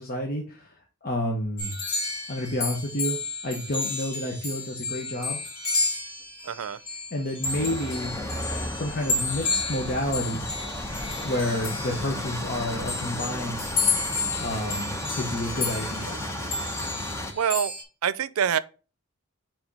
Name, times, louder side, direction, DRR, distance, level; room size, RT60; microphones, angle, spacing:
voice 1, 0.0-1.8 2.3-3.2 3.4-5.4 7.1-8.1 8.7-10.4 11.2-13.7 14.4-16.3, left 1 dB, 45° left, 1.0 m, -30 dB
sound 1, 1.6-17.8, left 3 dB, 85° left, 2.3 m, -31 dB
voice 2, 6.4-6.8 17.3-17.7 18.0-18.6, right 8 dB, 90° right, 0.5 m, -25 dB
sound 2, 7.4-17.3, left 1 dB, 15° left, 0.8 m, -34 dB
5.0 x 3.7 x 5.3 m
head